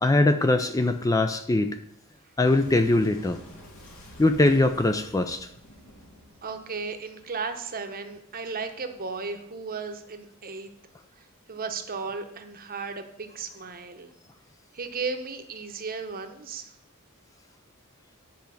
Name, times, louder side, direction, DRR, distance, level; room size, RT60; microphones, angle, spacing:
voice 1, 0.0-1.8 2.4-3.4 4.2-5.5, left 2 dB, 15° left, 8 dB, 0.4 m, -22 dB
Boom, 2.4-7.6, left 1 dB, 75° left, 2.7 m, -49 dB
voice 2, 6.4-10.7 11.2-14.1 14.7-16.7, right 4 dB, 40° right, 7 dB, 0.9 m, -35 dB
9.6 x 4.5 x 6.9 m, 0.76 s
head